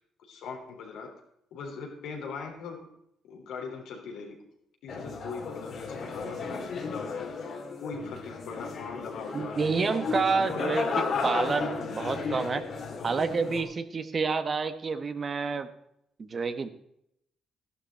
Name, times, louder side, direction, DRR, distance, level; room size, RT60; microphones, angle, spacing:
voice 1, 0.2-1.1 1.5-2.8 3.3-4.4 4.8-7.2 7.8-9.7 10.4-11.0 12.0-12.1, left 5 dB, 85° left, 1 dB, 3.8 m, -40 dB
sound 1, 4.9-13.6, left 4 dB, 60° left, 2.8 m, -34 dB
voice 2, 9.3-12.6 13.0-15.7 16.2-16.7, right 4 dB, 40° right, 10 dB, 1.1 m, -29 dB
13.0 x 11.5 x 4.5 m, 0.76 s
cardioid pair, 90°, 0 cm